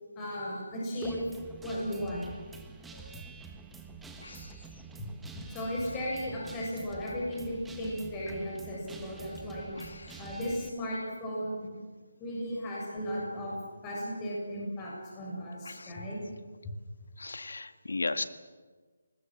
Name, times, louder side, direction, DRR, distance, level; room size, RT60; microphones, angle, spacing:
voice 1, 0.2-1.2 1.6-2.3 5.0-5.1 5.5-9.7 10.2-11.7 12.2-13.5 13.8-16.2, equal, 15° left, -4 dB, 6.8 m, -35 dB
Guitar, 1.0-10.7, right 4 dB, 5° right, 1.2 m, -47 dB
voice 2, 4.2-4.5 9.8-10.2 15.6-15.9 17.2-18.2, left 3 dB, 80° left, 9 dB, 1.8 m, -36 dB
27.0 x 20.0 x 7.8 m, 1.4 s
hypercardioid pair, 170°, 0 cm